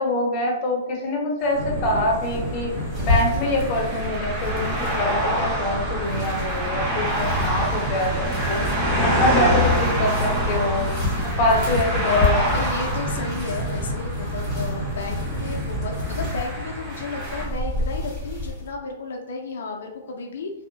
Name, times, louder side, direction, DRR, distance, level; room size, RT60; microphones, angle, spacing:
voice 1, 0.0-8.7 9.0-10.9 11.4-12.6, left 1 dB, 30° left, -1 dB, 0.6 m, -25 dB
sound 1, 1.4-17.5, equal, 30° right, 1.0 m, -27 dB
sound 2, 1.5-16.3, right 1 dB, 75° right, 1.2 m, -30 dB
sound 3, 2.1-18.7, left 2 dB, 10° right, 1.1 m, -31 dB
voice 2, 11.1-11.9 12.5-20.5, left 4 dB, 75° left, 1 dB, 0.4 m, -33 dB
2.6 x 2.0 x 2.6 m, 0.88 s
hypercardioid pair, 160°, 0 cm